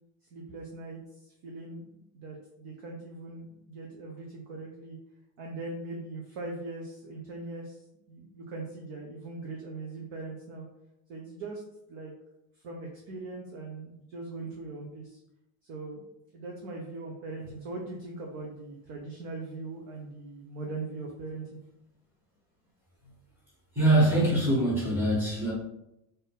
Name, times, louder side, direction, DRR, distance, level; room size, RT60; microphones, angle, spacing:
voice 1, 0.3-5.0 5.4-10.7 11.1-11.6 11.9-12.1 12.6-15.2 15.6-16.1 16.3-21.6, right 3 dB, 35° right, 0 dB, 0.5 m, -40 dB
voice 2, 23.7-25.5, right 1 dB, 5° right, -7 dB, 1.5 m, -23 dB
4.1 x 2.6 x 3.5 m, 0.82 s
cardioid pair, 180°, 40 cm